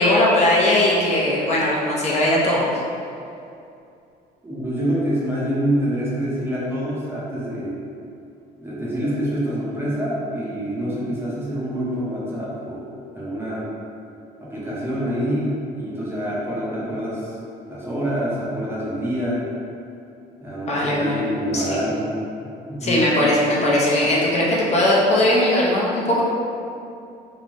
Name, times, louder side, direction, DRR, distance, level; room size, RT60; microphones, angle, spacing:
voice 1, 0.0-2.6 20.7-21.2 21.5-21.8 22.8-26.2, left 1 dB, 40° left, -5 dB, 0.6 m, -19 dB
voice 2, 4.4-7.7 8.6-12.9 13.1-13.7 14.4-17.3 17.7-19.4 20.4-22.2 22.7-23.1, equal, 15° right, -8 dB, 0.7 m, -26 dB
3.1 x 2.1 x 2.5 m, 2.6 s
cardioid pair, 110°, 17 cm